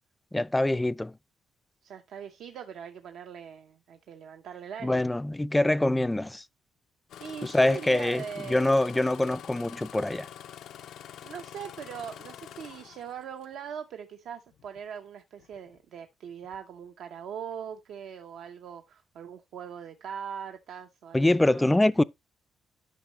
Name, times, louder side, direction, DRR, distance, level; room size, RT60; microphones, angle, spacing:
voice 1, 0.3-1.1 4.8-6.4 7.4-8.2 8.5-10.3 21.1-22.0, left 1 dB, 10° left, 0.3 m, -24 dB
voice 2, 1.8-5.1 7.2-9.3 11.2-21.7, right 8 dB, 75° right, 0.7 m, -41 dB
Engine starting, 7.1-13.5 14.5-14.8 15.4-15.8 16.4-16.6, left 10 dB, 75° left, 0.5 m, -46 dB
11.5 x 5.5 x 3.0 m
cardioid pair, 90°, 0 cm